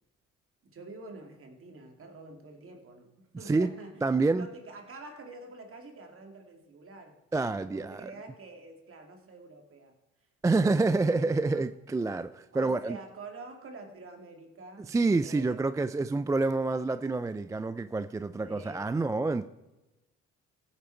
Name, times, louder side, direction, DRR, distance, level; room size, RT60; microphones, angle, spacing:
voice 1, 0.7-4.0 4.3-9.9 10.6-11.6 12.5-14.9 15.2-15.7 18.4-19.3, right 3 dB, 45° right, 2.2 m, -47 dB
voice 2, 4.0-4.5 7.3-8.1 10.4-13.0 14.9-19.5, right 3 dB, 10° right, 0.3 m, -27 dB
15.5 x 7.2 x 4.5 m
supercardioid pair, 75°, 30 cm